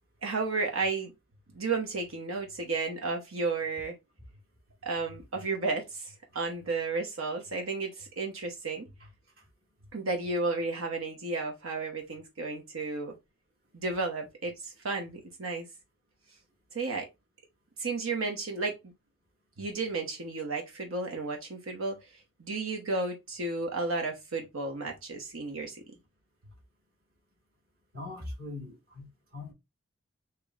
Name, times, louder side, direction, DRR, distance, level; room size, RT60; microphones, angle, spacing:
voice 1, 0.2-1.1 1.5-3.9 4.8-8.9 9.9-13.2 13.7-15.7 16.7-17.1 17.8-18.9 19.6-25.8, right 3 dB, 85° right, 1.0 m, -33 dB
voice 2, 27.9-29.5, left 2 dB, 45° right, 1.8 m, -41 dB
6.7 x 3.0 x 2.4 m
head